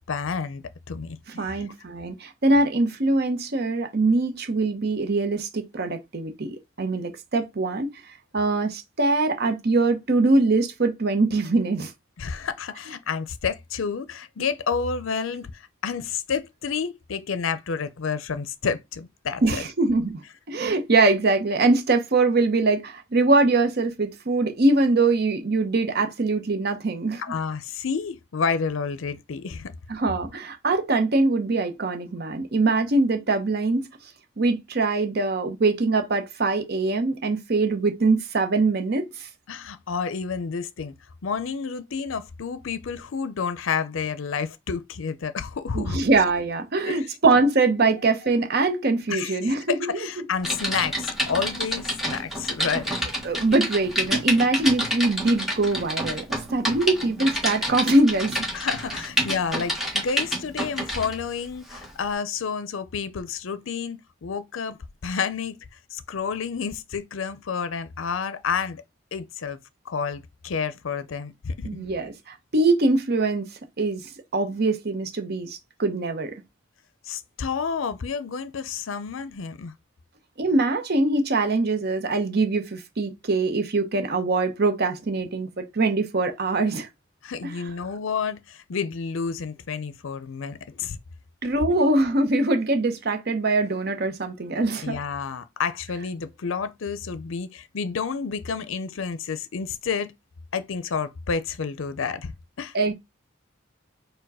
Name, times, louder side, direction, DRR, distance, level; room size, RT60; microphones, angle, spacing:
voice 1, 0.1-1.7 12.2-19.7 27.2-29.7 39.5-40.9 41.2-46.0 46.8-47.2 49.1-53.1 54.1-54.2 58.5-64.8 65.0-68.8 69.1-69.6 69.9-71.9 77.0-79.7 87.2-91.0 94.8-100.1 100.5-102.7, left 6 dB, 75° left, 0.5 m, -30 dB
voice 2, 1.3-7.9 8.3-11.9 19.4-20.2 20.5-27.2 29.9-33.9 34.4-39.3 45.7-50.1 53.2-56.2 56.5-58.4 71.6-73.5 73.8-76.4 80.4-86.9 87.4-87.5 91.4-95.0 102.7-102.9, right 3 dB, 50° right, 0.7 m, -23 dB
Typing, 50.4-61.2 61.7-61.9, equal, ahead, 1.3 m, -28 dB
4.6 x 2.2 x 4.7 m
head